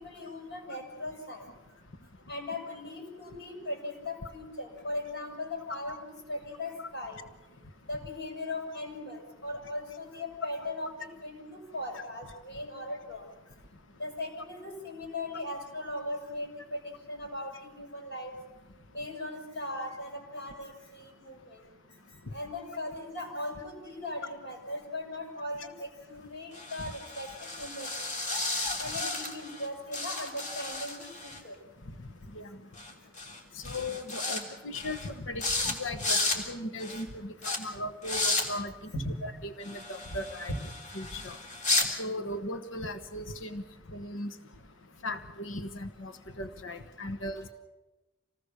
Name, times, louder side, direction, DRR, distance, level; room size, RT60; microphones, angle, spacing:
voice 1, 0.0-1.5 2.3-7.2 7.9-13.3 14.0-18.3 18.9-21.6 22.1-27.9 28.5-31.6 33.7-33.8 37.6-37.7 38.9-39.2 40.5-40.6, left 1 dB, 55° left, 1 dB, 7.1 m, -38 dB
sound 1, 26.5-29.7 29.9-31.4 32.8-32.9 33.2-33.4 33.6-34.4 34.7-35.1 35.4-35.7 36.0-36.4 36.8-37.0 37.4-37.6 38.0-38.4 39.6-41.9, left 2 dB, 40° left, 3.5 m, -33 dB
voice 2, 33.6-38.9 39.2-40.6 40.9-41.4 42.0-43.6 43.9-44.3 45.0-46.1 46.4-47.5, left 1 dB, 85° left, 9 dB, 1.3 m, -37 dB
27.0 x 19.0 x 6.8 m, 1.1 s
head